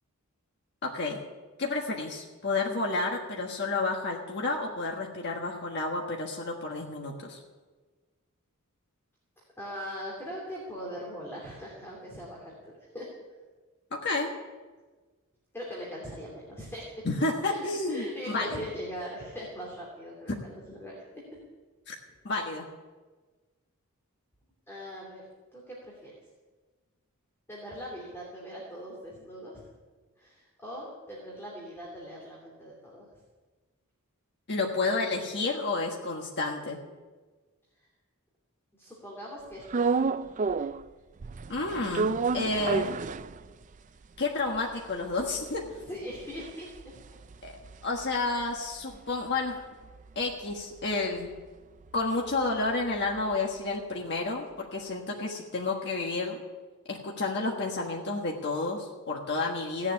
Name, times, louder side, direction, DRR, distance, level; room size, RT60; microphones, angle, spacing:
voice 1, 0.8-1.2 1.6-7.4 13.9-14.3 17.0-18.6 20.3-20.4 21.9-22.0 22.2-22.6 34.5-36.8 41.5-42.9 44.2-45.6 47.4-47.5 47.8-49.6 50.1-51.3 51.9-56.4 56.9-59.9, left 3 dB, 50° left, 0 dB, 1.4 m, -30 dB
voice 2, 9.6-13.1 15.5-17.0 17.4-21.4 24.7-25.2 25.5-26.1 27.5-29.6 30.2-33.1 38.7-40.1 45.9-46.7, equal, 10° left, -3 dB, 2.8 m, -41 dB
sound 1, 39.7-40.9 41.2-43.8 44.2-44.3 44.5-49.0 49.3-53.3, right 4 dB, 35° right, 0.4 m, -32 dB
17.0 x 7.4 x 9.6 m, 1.3 s
head